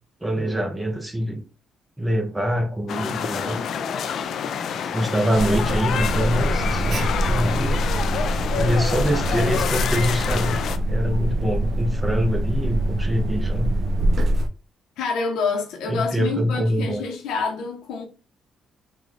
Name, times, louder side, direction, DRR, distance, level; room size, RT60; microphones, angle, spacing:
voice 1, 0.2-1.4 2.0-3.7 4.9-7.8 8.5-10.6 10.9-13.7 15.9-17.0, equal, 15° right, 0.7 m, -24 dB
sound 1, 2.9-10.8, left 7 dB, 65° left, 0.3 m, -27 dB
Alarm, 5.4-14.5, right 1 dB, 55° right, 0.4 m, -24 dB
voice 2, 15.0-18.0, left 4 dB, 85° left, 0.8 m, -27 dB
3.8 x 2.3 x 3.1 m
cardioid pair, 90°, 0 cm